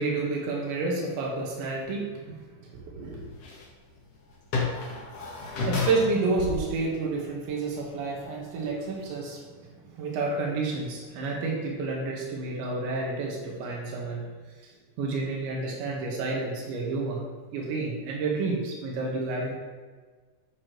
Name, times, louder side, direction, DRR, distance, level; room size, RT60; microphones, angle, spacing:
voice 1, 0.0-2.2 2.6-3.2 5.6-9.4 10.0-14.2 15.0-17.2 17.5-19.5, right 3 dB, 85° right, -2 dB, 3.9 m, -30 dB
sound 1, 3.2-7.7 8.1-8.2 8.6-8.7, left 4 dB, 60° left, 1.6 m, -32 dB
11.5 x 8.3 x 3.2 m, 1.4 s
omnidirectional pair, 5.1 m